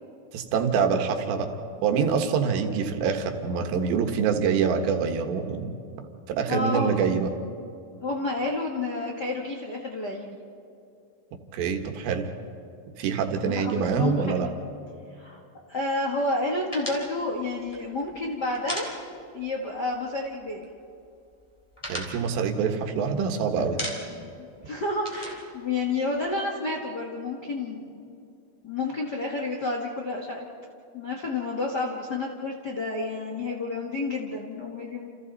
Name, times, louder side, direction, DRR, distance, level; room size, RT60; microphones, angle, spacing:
voice 1, 0.3-1.5 1.8-5.8 6.3-7.3 11.5-12.3 13.0-14.5 21.9-23.9, right 6 dB, 85° right, 5 dB, 3.7 m, -25 dB
voice 2, 6.5-7.0 8.0-10.4 13.4-14.6 15.1-15.4 15.7-18.9 19.3-20.7 24.1-28.0 28.6-30.4 30.9-35.1, left 2 dB, 75° left, -1 dB, 0.9 m, -30 dB
sound 1, 16.7-19.5 19.8-19.9 20.2-20.9 21.3-23.2 23.6-24.3 24.6-26.4, equal, 10° left, 2.7 m, -38 dB
29.0 x 28.5 x 4.1 m, 2.6 s
omnidirectional pair, 4.8 m